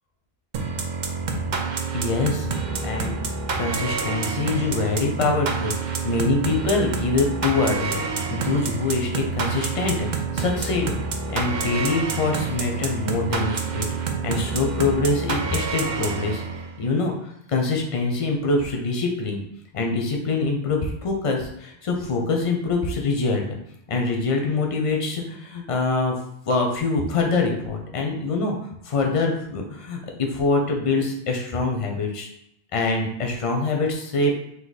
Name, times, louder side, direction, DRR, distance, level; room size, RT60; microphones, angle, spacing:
sound 1, 0.5-16.8, right 4 dB, 55° right, 0.6 m, -28 dB
voice 1, 1.9-3.2 3.6-10.9 11.3-13.9 14.2-16.4 16.8-19.4 19.7-23.4 23.9-26.2 26.5-32.3 32.7-34.3, left 3 dB, 35° left, 2 dB, 0.6 m, -24 dB
3.8 x 2.7 x 4.0 m, 0.75 s
omnidirectional pair, 1.1 m